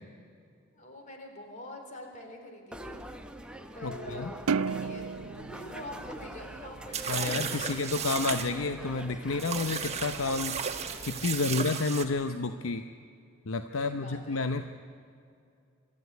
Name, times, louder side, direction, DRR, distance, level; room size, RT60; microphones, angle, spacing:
voice 1, 0.7-3.0 3.7-7.9 11.3-11.7 13.7-14.5, left 1 dB, 35° left, 3 dB, 3.7 m, -45 dB
sound 1, 2.7-11.3, equal, 5° right, 1.0 m, -44 dB
sound 2, 4.5-7.0, right 5 dB, 80° right, 0.5 m, -33 dB
sound 3, 6.9-8.5 9.4-12.0, right 6 dB, 30° right, 1.4 m, -34 dB
voice 2, 7.1-10.6 11.0-12.8 13.5-14.6, left 3 dB, 65° left, 9 dB, 0.8 m, -30 dB
24.5 x 13.5 x 9.5 m, 2.4 s
head